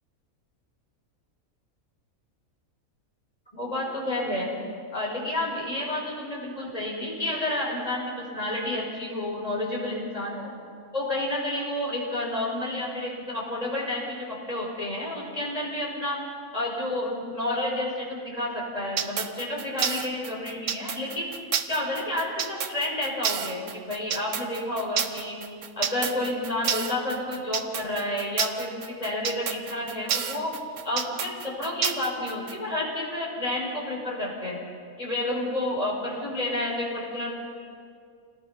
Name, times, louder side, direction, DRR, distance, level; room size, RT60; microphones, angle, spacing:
voice 1, 3.5-4.5 4.9-10.5 10.9-16.2 16.5-21.3 21.7-25.4 25.8-30.5 30.8-34.6 35.0-37.3, left 1 dB, 25° left, -3 dB, 6.0 m, -30 dB
sound 1, 19.0-32.5, right 8 dB, 65° right, 1.2 m, -29 dB
28.5 x 19.5 x 5.9 m, 2.2 s
omnidirectional pair, 1.5 m